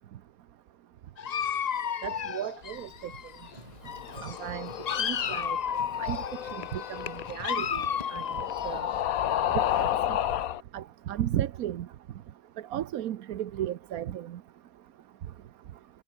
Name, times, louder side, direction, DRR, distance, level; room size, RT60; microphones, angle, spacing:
Dog, 1.2-3.6 3.8-9.8, left 8 dB, 60° left, 0.4 m, -33 dB
voice 1, 2.0-2.9 4.2-4.7 5.0-5.6 6.0-6.2 6.5-7.0 7.3-7.8 8.1-8.2 8.6-8.8 9.5-9.9 10.7-11.9 12.7-14.4, right 11 dB, 90° right, 1.3 m, -34 dB
Car, 3.4-9.1, right 2 dB, 30° right, 2.4 m, -53 dB
sound 1, 3.9-10.6, left 11 dB, 80° left, 1.3 m, -32 dB
omnidirectional pair, 1.5 m